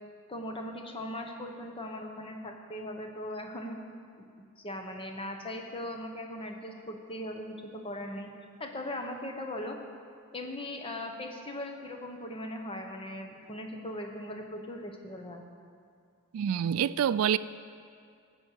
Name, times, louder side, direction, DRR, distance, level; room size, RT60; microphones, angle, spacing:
voice 1, 0.3-3.8 4.2-8.3 8.6-9.8 10.3-15.4, left 1 dB, 25° left, 3 dB, 1.0 m, -39 dB
voice 2, 16.3-17.4, right 9 dB, 70° right, 17 dB, 0.3 m, -26 dB
13.0 x 5.3 x 8.1 m, 2.3 s
head